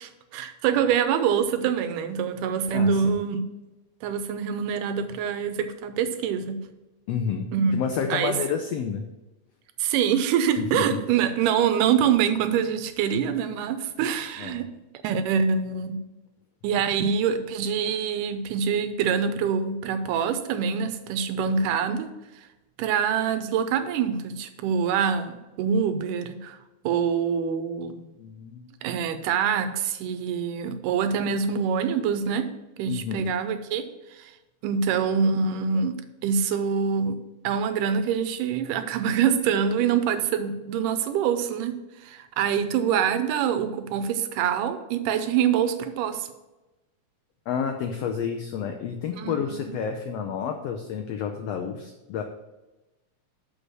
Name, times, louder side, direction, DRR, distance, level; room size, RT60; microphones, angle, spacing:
voice 1, 0.0-3.4 4.0-6.6 7.5-7.7 8.1-8.4 9.8-14.7 15.0-16.0 16.6-22.1 22.8-26.6 26.8-28.1 28.8-32.5 32.8-33.9 34.2-34.3 34.6-36.0 36.2-37.2 37.4-46.3 49.2-49.7, right 7 dB, 90° right, 10 dB, 2.3 m, -25 dB
voice 2, 2.7-3.2 7.1-9.0 10.6-10.9 14.4-14.6 28.2-28.7 32.9-33.3 47.5-52.2, left 7 dB, 90° left, 5 dB, 1.4 m, -30 dB
6.6 x 5.4 x 6.2 m, 1.0 s
omnidirectional pair, 3.6 m